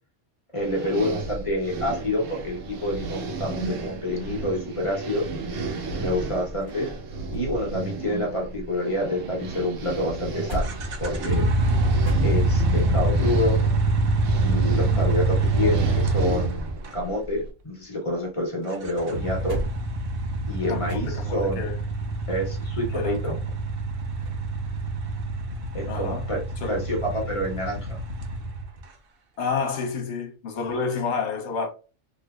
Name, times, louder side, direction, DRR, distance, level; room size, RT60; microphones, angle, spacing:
voice 1, 0.5-5.3 6.0-6.9 7.3-11.5 12.2-13.6 14.4-19.6 20.5-21.6 22.3-23.4 25.7-26.4 26.7-28.0, left 1 dB, 30° left, 0.9 m, -28 dB
sound 1, 0.5-17.5, right 3 dB, 85° right, 1.1 m, -34 dB
sound 2, 6.1-9.0 9.3-12.9 14.6-16.4 16.7-18.5 18.9-21.5 24.2-24.5, equal, 40° right, 1.4 m, -39 dB
sound 3, 10.6-17.0 18.7-28.8, right 2 dB, 60° right, 0.7 m, -25 dB
voice 2, 20.7-21.8 22.9-23.4 25.9-26.3 26.6-26.8 29.4-31.7, left 5 dB, 65° left, 1.1 m, -30 dB
3.2 x 2.6 x 2.3 m
omnidirectional pair, 1.3 m